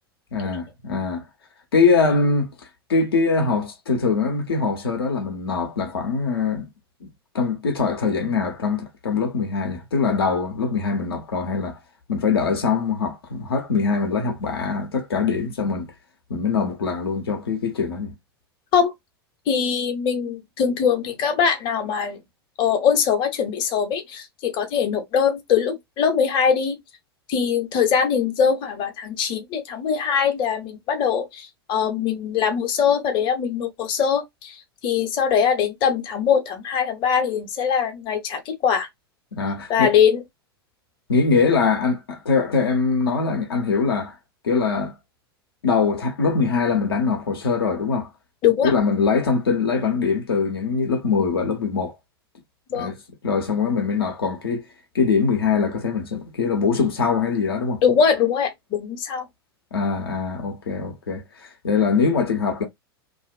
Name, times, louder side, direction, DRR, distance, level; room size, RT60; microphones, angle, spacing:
voice 1, 0.3-1.2 1.7-2.5 2.9-6.7 7.0-7.1 7.3-11.8 12.1-15.9 16.3-18.1 39.3-39.9 41.1-44.2 44.4-44.9 45.6-48.1 48.6-52.0 52.7-52.9 53.2-54.6 54.9-57.8 59.7-62.6, left 5 dB, 70° left, 0.7 m, -22 dB
voice 2, 19.5-22.2 22.6-26.8 27.3-34.6 34.8-38.9 39.7-40.2 48.4-48.7 52.7-52.9 57.8-59.3, left 7 dB, 40° left, 0.8 m, -22 dB
2.5 x 2.0 x 2.4 m
figure-of-eight pair, 90°, 13 cm